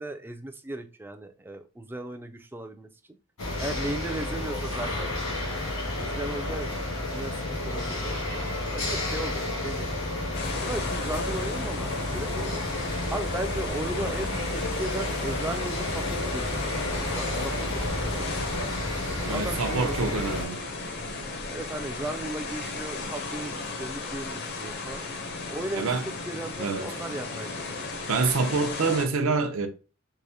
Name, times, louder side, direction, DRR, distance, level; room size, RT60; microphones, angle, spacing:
voice 1, 0.0-2.9 3.6-5.6 6.0-6.7 7.1-8.4 8.7-9.9 10.6-12.6 13.1-18.6 19.2-20.1 21.5-25.0 25.5-27.6, right 1 dB, 10° right, 0.3 m, -36 dB
sound 1, 3.4-20.4, left 1 dB, 85° left, 1.7 m, -31 dB
sound 2, 10.3-29.1, left 3 dB, 50° left, 0.6 m, -35 dB
voice 2, 19.2-20.6 25.7-26.0 26.6-26.9 28.1-29.7, right 4 dB, 70° right, 0.6 m, -26 dB
4.6 x 2.0 x 2.7 m
head